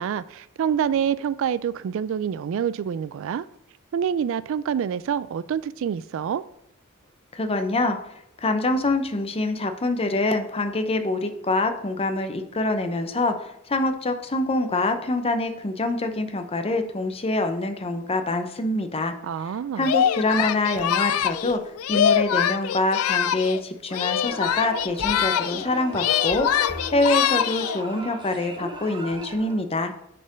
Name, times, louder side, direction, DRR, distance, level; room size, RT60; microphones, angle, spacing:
voice 1, 0.0-3.5 3.9-6.4 19.2-19.9, right 8 dB, 60° right, 0.3 m, -26 dB
voice 2, 7.3-8.0 8.4-19.1 19.8-21.6 21.9-26.5 26.9-29.9, left 2 dB, 25° left, 0.7 m, -25 dB
Singing, 19.8-23.6 23.9-25.7 25.9-27.8, left 9 dB, 75° left, 0.3 m, -24 dB
sound 1, 24.2-29.6, right 2 dB, 20° right, 0.9 m, -37 dB
6.6 x 4.3 x 5.1 m
head